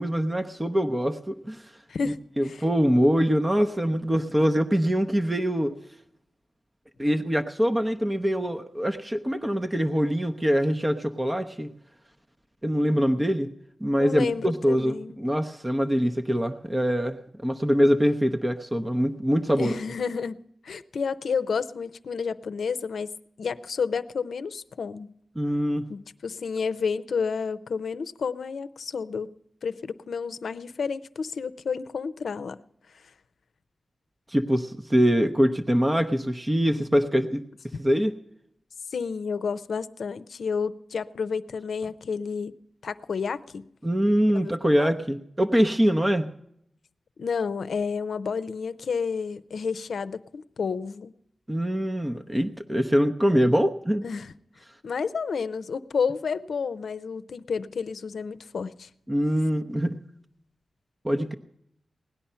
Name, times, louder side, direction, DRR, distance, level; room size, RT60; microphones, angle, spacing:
voice 1, 0.0-1.6 2.0-5.7 7.0-11.7 12.6-13.5 13.8-19.8 25.4-25.9 34.3-37.4 37.8-38.1 43.8-46.3 51.5-54.0 59.1-60.0 61.0-61.3, equal, 15° right, 6 dB, 0.7 m, -24 dB
voice 2, 1.9-2.6 14.0-15.2 19.6-23.1 23.4-25.1 25.9-29.3 29.6-32.6 38.9-42.5 42.8-43.7 44.3-44.5 44.8-44.9 47.2-51.1 54.0-54.3 54.8-58.9, left 5 dB, 80° left, 13 dB, 0.6 m, -30 dB
18.0 x 10.5 x 5.6 m, 0.74 s
wide cardioid pair, 105°, 0 cm